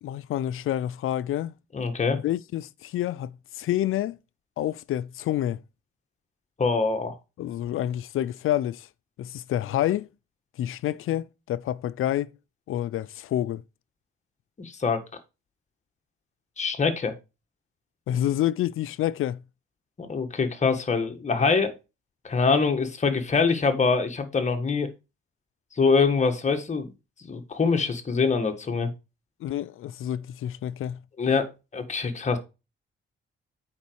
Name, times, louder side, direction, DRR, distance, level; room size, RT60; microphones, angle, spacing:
voice 1, 0.0-1.5 2.1-4.2 4.6-5.6 7.4-8.9 9.2-10.1 10.6-12.3 12.7-13.6 18.1-19.4 29.4-31.0, left 12 dB, 80° left, 0.5 m, -28 dB
voice 2, 1.7-2.2 6.6-7.1 14.6-15.0 16.6-17.2 20.0-21.7 22.2-24.9 25.8-26.9 27.2-28.9 31.2-32.4, left 4 dB, 35° left, 1.6 m, -24 dB
8.5 x 5.2 x 4.6 m
cardioid pair, 115°, 21 cm